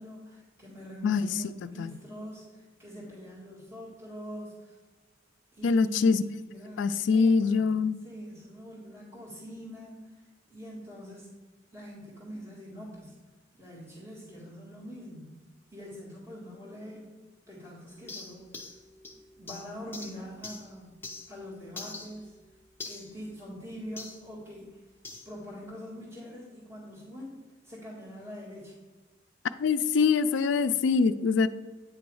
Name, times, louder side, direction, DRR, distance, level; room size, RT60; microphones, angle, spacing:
voice 1, 0.0-4.7 5.5-7.7 8.0-10.1 10.5-11.3 11.7-13.1 13.5-15.3 15.7-17.1 17.5-18.7 19.3-21.0 21.3-22.3 22.9-24.7 25.3-27.4 27.6-28.7, equal, 15° right, -8 dB, 1.9 m, -44 dB
voice 2, 5.6-6.2 6.8-8.0 29.6-31.5, left 5 dB, 70° left, 13 dB, 0.3 m, -24 dB
sound 1, 17.9-21.4 21.8-24.2 25.0-25.3, left 3 dB, 10° left, 0.7 m, -45 dB
9.1 x 3.1 x 4.7 m, 1.2 s
head